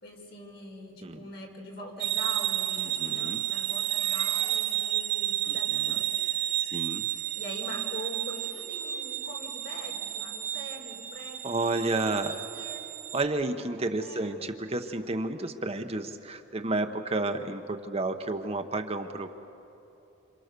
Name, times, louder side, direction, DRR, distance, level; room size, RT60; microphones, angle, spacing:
voice 1, 0.0-6.6 7.1-12.9 14.0-14.4, left 1 dB, 55° left, -1 dB, 4.9 m, -44 dB
sound 1, 2.0-13.2, right 13 dB, 65° right, 1.7 m, -31 dB
voice 2, 2.8-3.4 4.0-4.6 5.4-6.0 6.6-7.1 11.4-12.4 13.1-19.3, right 2 dB, 30° right, 6 dB, 0.9 m, -31 dB
28.0 x 27.5 x 6.8 m, 2.9 s
head